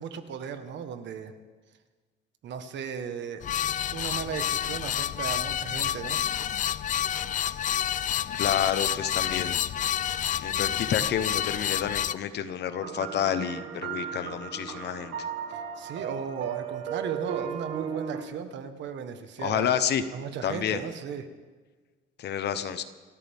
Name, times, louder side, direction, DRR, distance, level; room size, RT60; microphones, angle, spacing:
voice 1, 0.0-1.3 2.4-3.6 3.9-6.2 15.8-19.7 20.1-21.3, right 7 dB, 60° right, 8 dB, 1.5 m, -36 dB
sound 1, 3.4-12.1, left 10 dB, 40° left, 0.4 m, -29 dB
voice 2, 8.3-9.6 10.4-15.1 19.4-20.0 20.4-20.8 22.2-22.8, left 9 dB, 55° left, 11 dB, 1.1 m, -29 dB
sound 2, 12.8-18.2, right 7 dB, 85° right, 2.3 m, -36 dB
29.0 x 13.5 x 3.7 m, 1.4 s
cardioid pair, 145°, 21 cm